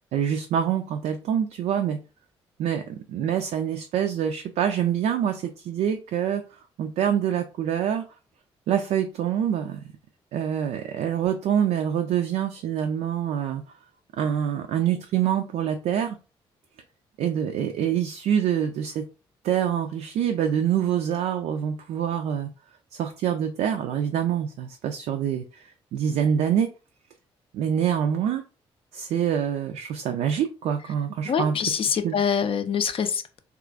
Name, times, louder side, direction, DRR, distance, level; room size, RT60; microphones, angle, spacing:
voice 1, 0.1-2.0 2.6-8.0 8.7-9.8 10.3-13.6 14.2-16.2 17.2-19.0 19.4-22.5 22.9-25.6 25.9-26.7 27.5-28.4 28.9-31.6 32.0-32.2, right 9 dB, 60° right, 5 dB, 0.4 m, -25 dB
voice 2, 31.3-33.4, left 7 dB, 45° left, 10 dB, 0.4 m, -25 dB
2.9 x 2.4 x 2.4 m, 0.33 s
figure-of-eight pair, 40°, 13 cm